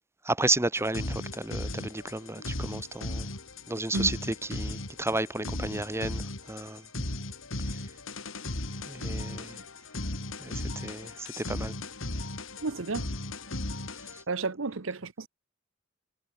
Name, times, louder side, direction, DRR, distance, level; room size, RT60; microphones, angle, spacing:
voice 1, 0.2-3.3 3.7-4.2 4.5-6.8 8.9-9.6 10.4-11.7, right 2 dB, 15° right, 1.6 m, -32 dB
sound 1, 0.8-14.2, left 2 dB, 85° left, 4.1 m, -36 dB
voice 2, 12.6-13.1 14.3-15.3, right 3 dB, 75° right, 1.0 m, -31 dB
head